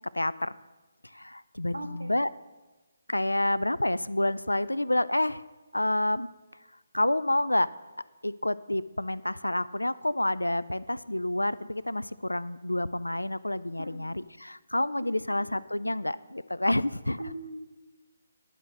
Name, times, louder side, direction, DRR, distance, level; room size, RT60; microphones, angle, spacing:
voice 1, 0.1-0.6 1.0-2.3 3.1-5.4 5.7-6.3 6.9-7.7 8.2-17.2, left 1 dB, 85° left, 17 dB, 0.3 m, -28 dB
voice 2, 1.7-2.1 13.8-14.0 15.0-15.3 17.2-17.6, right 1 dB, 80° right, 8 dB, 1.1 m, -40 dB
11.0 x 6.0 x 6.4 m, 1.2 s
figure-of-eight pair, 145°, 0 cm